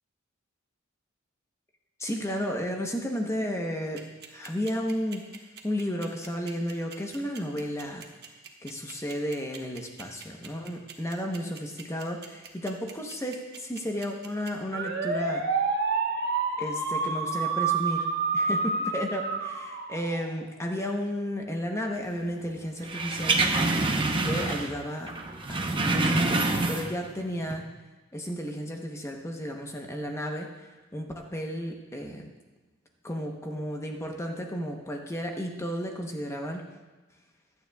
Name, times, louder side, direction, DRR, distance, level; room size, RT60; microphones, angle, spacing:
voice 1, 2.0-5.2 5.6-8.0 8.6-15.4 16.6-18.1 18.3-23.4 24.2-25.1 25.5-27.6 28.1-32.3 33.0-36.6, equal, 15° left, 1 dB, 0.9 m, -33 dB
sound 1, 4.0-20.4, right 4 dB, 55° right, 1.2 m, -29 dB
sound 2, 22.9-24.8 25.1-27.1 27.4-27.5, right 2 dB, 25° right, 0.8 m, -26 dB
16.0 x 11.5 x 2.3 m, 1.2 s
head